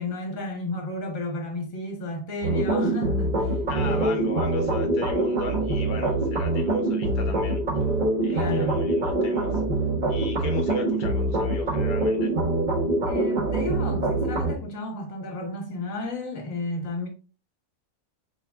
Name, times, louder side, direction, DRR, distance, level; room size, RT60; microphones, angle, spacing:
voice 1, 0.0-4.3 8.3-8.9 13.0-17.1, left 2 dB, 65° left, 1.6 m, -32 dB
sound 1, 2.4-14.5, right 2 dB, 35° right, 1.1 m, -24 dB
voice 2, 3.7-7.9 8.2-9.6 10.1-12.3, left 5 dB, 90° left, 1.2 m, -37 dB
4.5 x 3.4 x 3.4 m
omnidirectional pair, 1.5 m